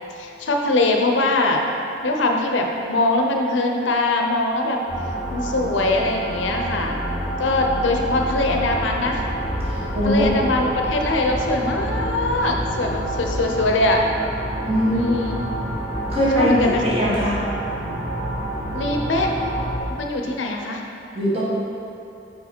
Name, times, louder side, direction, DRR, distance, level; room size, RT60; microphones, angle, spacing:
voice 1, 0.2-1.6 2.0-4.8 5.3-7.0 7.4-9.2 10.0-14.0 14.9-15.3 16.4-16.8 18.7-19.3 20.0-20.8, left 2 dB, 85° left, 2 dB, 0.6 m, -22 dB
sound 1, 4.9-19.8, equal, 10° right, 0.8 m, -28 dB
voice 2, 9.6-10.7 14.6-15.1 16.1-17.4 21.1-21.4, equal, 30° right, -9 dB, 1.3 m, -21 dB
4.8 x 4.7 x 4.5 m, 2.8 s
head